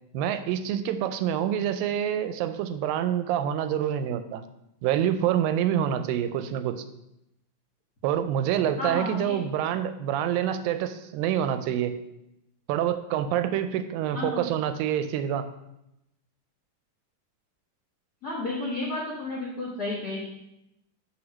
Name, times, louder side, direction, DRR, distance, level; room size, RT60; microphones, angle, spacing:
voice 1, 0.1-4.4 4.8-6.8 8.0-12.0 12.7-15.5, right 10 dB, 85° right, 10 dB, 2.3 m, -27 dB
voice 2, 8.8-9.3 14.1-14.5 18.2-20.3, left 2 dB, 65° left, -6 dB, 0.9 m, -32 dB
7.8 x 3.5 x 6.2 m, 0.85 s
omnidirectional pair, 4.0 m